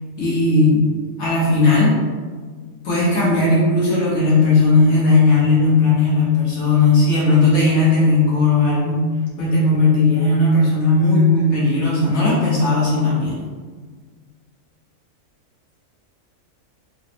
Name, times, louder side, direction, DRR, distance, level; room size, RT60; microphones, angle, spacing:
voice 1, 0.2-0.8 1.2-2.0 2.8-9.0 9.4-13.4, left 3 dB, 85° left, -7 dB, 1.6 m, -16 dB
3.9 x 2.1 x 2.9 m, 1.5 s
omnidirectional pair, 1.4 m